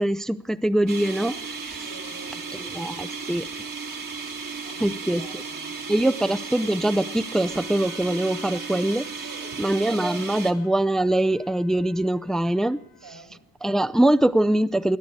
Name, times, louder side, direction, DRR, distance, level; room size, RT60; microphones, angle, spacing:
voice 1, 0.0-1.8 2.6-3.5 4.8-5.4 5.9-9.1 9.6-12.8 13.6-15.0, right 1 dB, ahead, 0.4 m, -23 dB
sound 1, 0.9-10.5, right 5 dB, 50° right, 1.9 m, -35 dB
voice 2, 1.8-2.7 4.6-6.1 9.2-9.7 13.0-13.5, right 3 dB, 75° right, 6.2 m, -47 dB
Wind instrument woodwind instrument, 7.4-13.2, left 8 dB, 90° left, 3.3 m, -54 dB
20.0 x 10.0 x 4.7 m
supercardioid pair, 40°, 41 cm